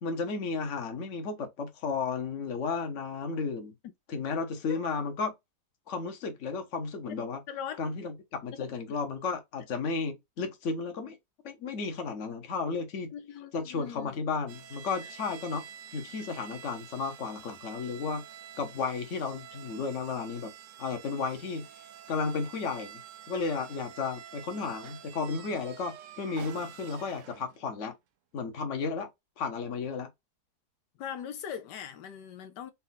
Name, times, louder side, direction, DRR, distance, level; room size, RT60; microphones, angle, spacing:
voice 1, 0.0-3.7 4.1-5.3 5.9-7.4 7.8-11.2 11.4-13.1 13.5-15.6 15.9-18.2 18.6-20.5 20.8-21.7 22.1-23.0 23.3-27.9 28.3-29.1 29.4-30.1, left 4 dB, 50° left, 1.2 m, -33 dB
voice 2, 7.5-7.8 8.6-9.0 13.1-14.2 31.0-32.7, left 8 dB, 85° left, 1.3 m, -40 dB
sound 1, 14.5-27.7, right 9 dB, 65° right, 0.8 m, -48 dB
4.3 x 2.5 x 4.0 m
omnidirectional pair, 1.8 m